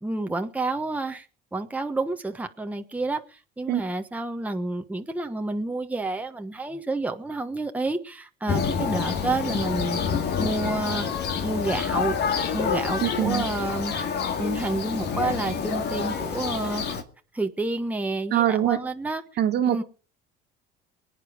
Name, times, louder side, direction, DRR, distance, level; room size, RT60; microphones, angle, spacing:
voice 1, 0.0-1.3 1.5-11.1 11.4-12.2 12.5-13.9 14.4-16.8 17.3-19.2 19.7-19.8, right 2 dB, 5° right, 1.2 m, -29 dB
Thunder, 8.5-17.0, left 6 dB, 55° left, 2.3 m, -28 dB
voice 2, 13.0-13.5 18.3-18.8 19.4-19.8, right 11 dB, 55° right, 1.8 m, -23 dB
23.0 x 9.3 x 5.0 m
supercardioid pair, 85°, 20 cm